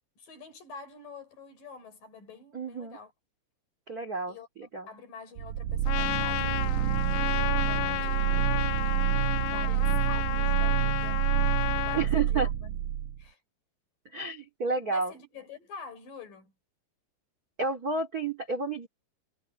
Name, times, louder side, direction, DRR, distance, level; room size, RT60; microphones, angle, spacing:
voice 1, 0.2-3.1 4.3-4.5 4.9-7.1 7.5-8.6 9.4-11.2 11.7-12.5 13.2-13.4 14.9-16.5, left 5 dB, 50° left, 5.8 m, -47 dB
voice 2, 2.5-3.0 3.9-4.4 4.7-4.9 11.9-12.5 14.1-15.1 17.6-18.9, right 4 dB, 30° right, 1.7 m, -30 dB
sound 1, 5.4-13.2, right 10 dB, 75° right, 1.9 m, -28 dB
Trumpet, 5.9-12.1, left 19 dB, 80° left, 2.7 m, -32 dB
omnidirectional pair, 5.2 m